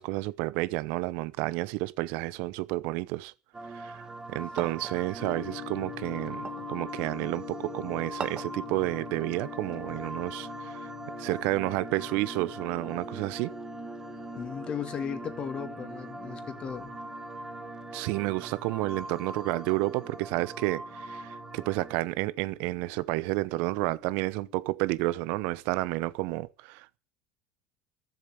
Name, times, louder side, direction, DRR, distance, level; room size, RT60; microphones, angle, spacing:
voice 1, 0.0-3.3 3.7-10.9 11.2-13.5 17.9-27.0, right 20 dB, 70° right, 0.8 m, -31 dB
sound 1, 3.5-22.0, right 3 dB, 20° right, 1.4 m, -42 dB
sound 2, 4.6-5.0 6.4-6.7 8.2-8.6, right 7 dB, 40° right, 1.7 m, -38 dB
sound 3, 5.2-24.7, left 17 dB, 60° left, 3.1 m, -46 dB
voice 2, 14.3-16.9, left 7 dB, 40° left, 2.1 m, -36 dB
14.0 x 7.4 x 8.8 m
hypercardioid pair, 85°, 3 cm